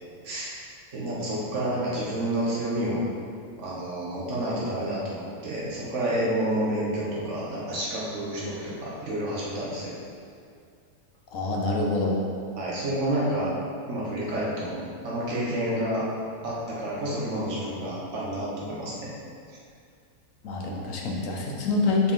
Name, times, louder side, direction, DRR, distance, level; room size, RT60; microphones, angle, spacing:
voice 1, 0.2-0.6 0.9-3.0 3.6-10.0 12.6-13.5 13.9-16.1 16.4-19.1, right 1 dB, 55° right, -6 dB, 1.6 m, -29 dB
voice 2, 11.3-12.2 20.4-22.1, left 3 dB, 65° left, -1 dB, 1.2 m, -26 dB
6.5 x 4.6 x 3.8 m, 2.3 s
omnidirectional pair, 1.6 m